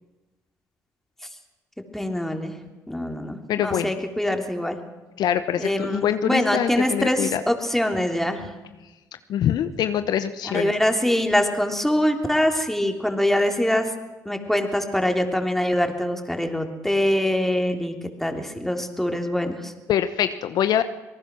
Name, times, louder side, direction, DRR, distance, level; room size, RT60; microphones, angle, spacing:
voice 1, 1.9-2.5 2.9-4.8 5.6-8.5 10.4-13.9 14.2-19.7, left 1 dB, 5° left, 4 dB, 3.4 m, -24 dB
voice 2, 3.5-3.9 5.2-7.4 9.3-10.7 19.9-20.8, left 10 dB, 65° left, 11 dB, 0.9 m, -24 dB
25.5 x 18.5 x 6.2 m, 1.1 s
hypercardioid pair, 55°, 7 cm